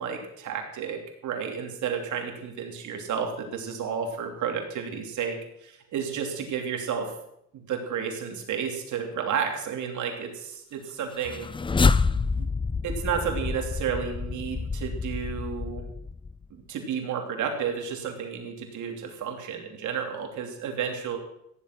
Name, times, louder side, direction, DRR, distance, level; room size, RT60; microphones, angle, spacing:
voice 1, 0.0-7.1 7.5-11.5 12.4-12.5 12.8-15.8 16.5-21.2, right 7 dB, 75° right, 3 dB, 3.2 m, -32 dB
sound 1, 11.1-16.5, left 4 dB, 15° left, 0.5 m, -27 dB
15.0 x 10.5 x 6.2 m, 0.77 s
cardioid pair, 90°, 30 cm